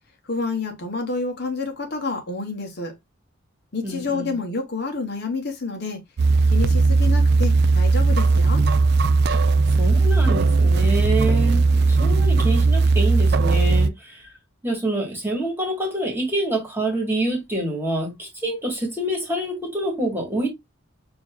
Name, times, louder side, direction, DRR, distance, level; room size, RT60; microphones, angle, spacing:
voice 1, 0.3-2.9 3.7-6.0 6.5-8.7, left 3 dB, 50° left, 1.0 m, -28 dB
voice 2, 3.8-4.4 9.8-14.2 14.6-20.5, right 1 dB, 10° right, 1.6 m, -26 dB
sound 1, 6.2-13.9, right 3 dB, 50° right, 0.3 m, -17 dB
6.8 x 2.7 x 2.3 m
head